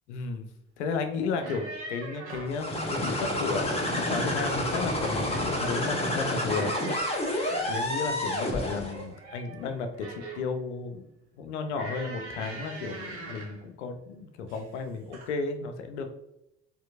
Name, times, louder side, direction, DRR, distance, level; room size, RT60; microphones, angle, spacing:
voice 1, 0.1-0.5 0.8-6.7 7.7-11.0 11.4-16.2, left 4 dB, 80° left, 7 dB, 0.6 m, -33 dB
sound 1, 1.3-2.6 4.1-4.7 5.0-5.5 6.5-7.9 8.9-10.5 11.7-13.6 14.5-14.8 15.1-15.3, right 2 dB, 80° right, 0.9 m, -42 dB
sound 2, 2.5-9.0, left 1 dB, 15° left, 1.0 m, -29 dB
4.3 x 2.7 x 2.4 m, 0.87 s
hypercardioid pair, 60°, 34 cm